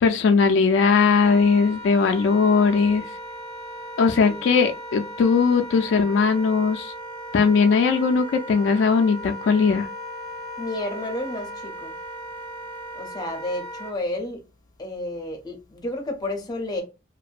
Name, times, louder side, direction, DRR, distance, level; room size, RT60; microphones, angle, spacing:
voice 1, 0.0-3.1 4.0-6.9 7.3-9.9, left 5 dB, 75° left, 0.3 m, -19 dB
Wind instrument woodwind instrument, 1.2-13.9, equal, 20° right, 1.0 m, -37 dB
voice 2, 4.2-4.5 10.6-11.9 12.9-14.4 14.8-16.8, left 1 dB, 20° left, 0.6 m, -31 dB
2.6 x 2.1 x 2.3 m
head